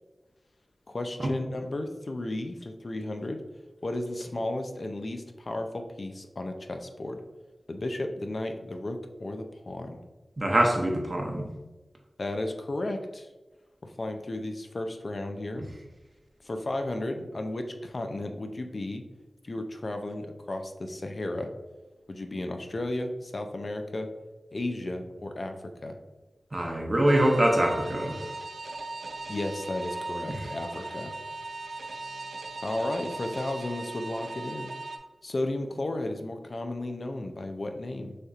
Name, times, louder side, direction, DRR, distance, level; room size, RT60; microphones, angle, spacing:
voice 1, 0.9-3.4 3.8-7.2 7.7-10.0 12.2-13.3 13.8-15.6 16.4-19.0 19.4-21.5 22.1-24.1 24.5-26.0 29.3-31.1 32.6-34.7 35.2-38.2, left 1 dB, 50° left, 5 dB, 0.4 m, -34 dB
voice 2, 10.4-11.4 26.5-28.2, right 1 dB, 40° right, 1 dB, 0.8 m, -24 dB
sound 1, 27.1-35.0, right 2 dB, 90° right, 0.5 m, -38 dB
6.4 x 2.8 x 2.4 m, 1.2 s
wide cardioid pair, 75°, 0 cm